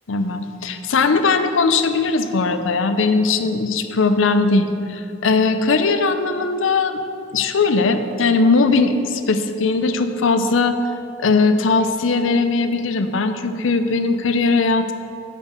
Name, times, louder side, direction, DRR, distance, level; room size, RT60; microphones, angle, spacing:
voice 1, 0.1-7.0 7.3-10.8 11.2-14.9, left 4 dB, 85° left, 9 dB, 0.6 m, -19 dB
8.2 x 5.1 x 6.6 m, 2.5 s
head